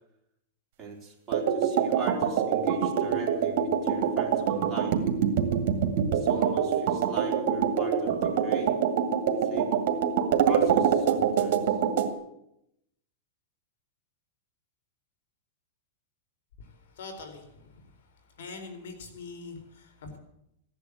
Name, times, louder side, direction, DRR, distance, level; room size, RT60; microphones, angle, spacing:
voice 1, 0.8-5.0 6.1-8.8 9.4-9.7 10.4-11.8, right 5 dB, 10° right, -3 dB, 4.3 m, -40 dB
sound 1, 1.3-12.1, right 7 dB, 55° right, 2.2 m, -25 dB
voice 2, 17.0-17.8 18.4-20.2, left 4 dB, 80° left, 7 dB, 4.3 m, -43 dB
16.0 x 10.5 x 8.4 m, 0.80 s
supercardioid pair, 145°, 0 cm